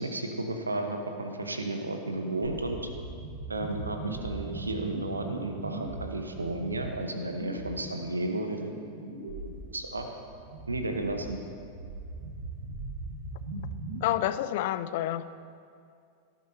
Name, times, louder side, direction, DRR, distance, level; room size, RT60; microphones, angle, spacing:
voice 1, 0.0-2.9 3.5-8.7 9.4-10.1 10.7-11.4, right 2 dB, 80° right, 5 dB, 1.1 m, -33 dB
sound 1, 2.4-14.0, right 2 dB, 60° right, 1.9 m, -40 dB
voice 2, 14.0-15.2, left 13 dB, 50° left, 13 dB, 0.4 m, -28 dB
18.0 x 11.5 x 2.9 m, 2.4 s
figure-of-eight pair, 90°, 0 cm